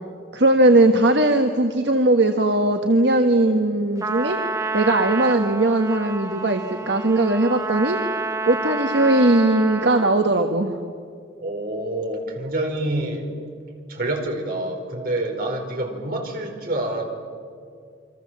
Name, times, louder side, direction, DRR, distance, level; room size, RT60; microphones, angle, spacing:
voice 1, 0.3-4.4 4.7-8.0 8.5-10.8, right 2 dB, 65° right, 5 dB, 1.4 m, -19 dB
Trumpet, 4.0-10.2, right 3 dB, 15° right, 0.7 m, -29 dB
voice 2, 11.4-13.3 13.9-17.1, right 1 dB, 50° right, 2 dB, 4.5 m, -27 dB
28.5 x 24.5 x 7.5 m, 2.2 s
head